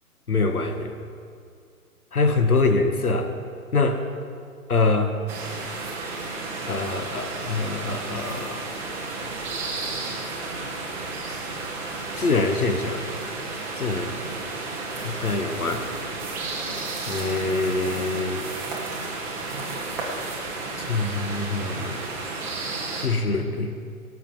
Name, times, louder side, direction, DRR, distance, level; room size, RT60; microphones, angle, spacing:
voice 1, 0.3-1.0 2.1-3.3 3.7-4.0 4.7-5.1 6.7-8.7 11.2-11.4 12.2-13.0 13.8-14.2 15.0-15.9 17.1-18.4 20.9-22.0 23.0-23.7, left 3 dB, 80° left, 7 dB, 1.4 m, -24 dB
sound 1, 5.3-23.1, right 3 dB, 5° right, 0.7 m, -32 dB
17.5 x 6.0 x 7.2 m, 2.3 s
figure-of-eight pair, 130°, 44 cm